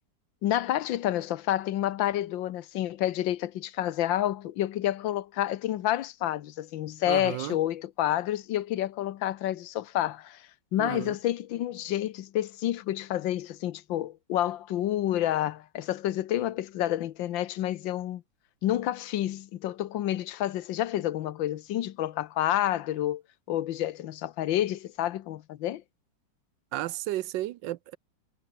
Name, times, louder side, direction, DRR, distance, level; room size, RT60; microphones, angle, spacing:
voice 1, 0.4-18.2 18.6-23.2 23.5-25.8, left 12 dB, 85° left, 1.6 m, -29 dB
voice 2, 7.1-7.6 10.8-11.1 26.7-28.0, right 14 dB, 75° right, 1.3 m, -33 dB
omnidirectional pair, 2.0 m